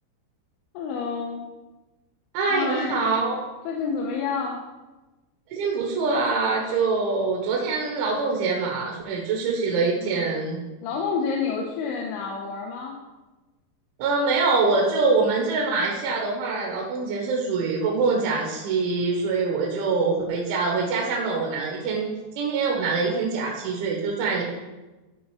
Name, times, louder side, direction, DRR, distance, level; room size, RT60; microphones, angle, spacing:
voice 1, 0.7-1.4 2.5-3.0 3.6-4.6 10.0-10.3 10.8-13.0, left 5 dB, 90° left, -1 dB, 3.4 m, -29 dB
voice 2, 2.3-3.4 5.5-10.6 14.0-22.1 22.4-24.4, right 4 dB, 85° right, -2 dB, 3.7 m, -24 dB
14.0 x 5.4 x 4.8 m, 1.2 s
omnidirectional pair, 5.3 m